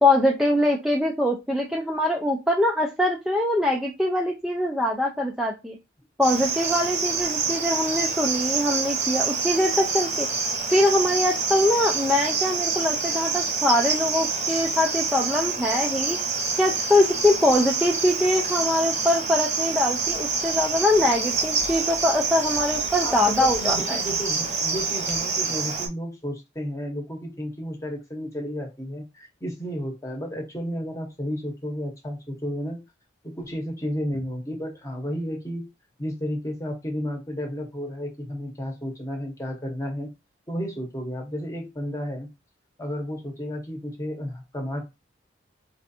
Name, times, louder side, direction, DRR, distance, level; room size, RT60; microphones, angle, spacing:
voice 1, 0.0-5.8 6.2-10.3 10.7-16.2 16.6-24.0, left 1 dB, ahead, 0 dB, 0.3 m, -23 dB
Cricket, 6.2-25.9, right 4 dB, 35° right, 0.8 m, -27 dB
voice 2, 23.0-32.8 33.2-35.7 36.0-40.1 40.5-42.3 42.8-44.8, equal, 15° left, 2 dB, 0.9 m, -32 dB
4.5 x 2.5 x 2.7 m, 0.24 s
head